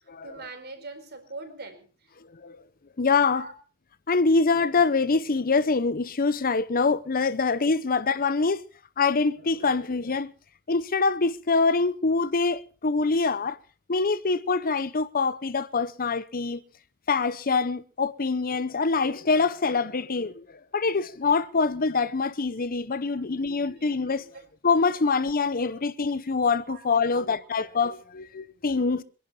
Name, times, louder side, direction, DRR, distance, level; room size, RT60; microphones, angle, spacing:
voice 1, 0.2-2.1 3.3-3.5 23.7-23.9 24.3-24.4 26.6-26.8, right 3 dB, 45° right, 4.5 m, -42 dB
voice 2, 3.0-3.5 4.1-8.6 9.0-10.3 10.7-13.6 13.9-16.6 17.1-20.4 20.7-24.3 24.6-29.0, left 4 dB, 40° left, 0.7 m, -25 dB
27.0 x 11.5 x 4.3 m
head